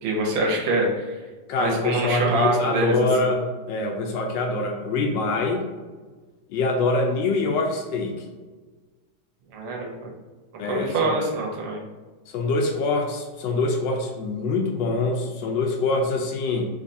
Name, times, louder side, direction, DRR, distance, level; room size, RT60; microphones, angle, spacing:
voice 1, 0.0-1.1 1.6-3.3 9.5-10.1 10.7-11.8, right 2 dB, 75° right, 0 dB, 1.5 m, -25 dB
voice 2, 1.5-5.6 6.5-8.1 10.6-11.1 12.3-16.7, left 3 dB, 75° left, 2 dB, 1.1 m, -24 dB
3.7 x 3.1 x 2.6 m, 1.3 s
omnidirectional pair, 2.4 m